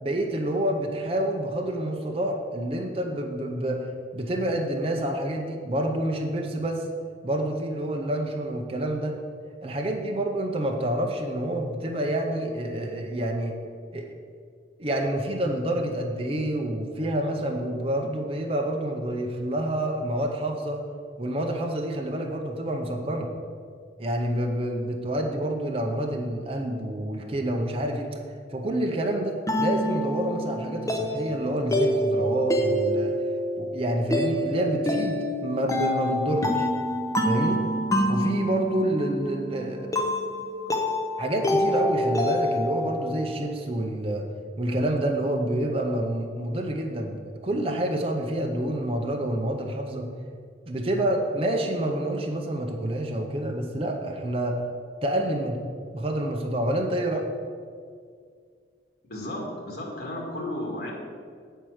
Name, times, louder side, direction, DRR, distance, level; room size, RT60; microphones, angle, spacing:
voice 1, 0.0-6.9 7.2-9.2 9.6-13.6 13.9-14.1 14.8-20.8 21.2-23.3 24.0-28.1 28.5-33.1 33.6-36.7 37.2-37.6 38.1-40.1 41.2-44.3 44.6-47.2 47.4-50.1 50.7-54.6 55.0-55.6 55.9-57.3, right 1 dB, 30° right, 2 dB, 0.6 m, -28 dB
sound 1, 28.6-43.4, equal, 15° left, 0.8 m, -27 dB
voice 2, 59.1-60.9, left 1 dB, 55° left, -2 dB, 1.7 m, -33 dB
8.6 x 4.5 x 6.3 m, 2.1 s
head